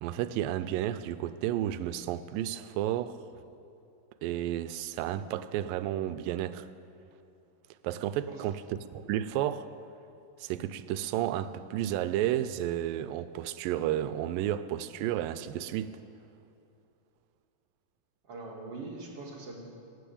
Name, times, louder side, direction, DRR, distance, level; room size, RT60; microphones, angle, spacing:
voice 1, 0.0-3.2 4.2-6.7 7.8-8.6 8.9-9.7 10.4-16.0, right 12 dB, 90° right, 2.3 m, -32 dB
voice 2, 18.2-19.6, right 3 dB, 50° right, 2.4 m, -42 dB
19.5 x 8.1 x 8.6 m
omnidirectional pair, 3.9 m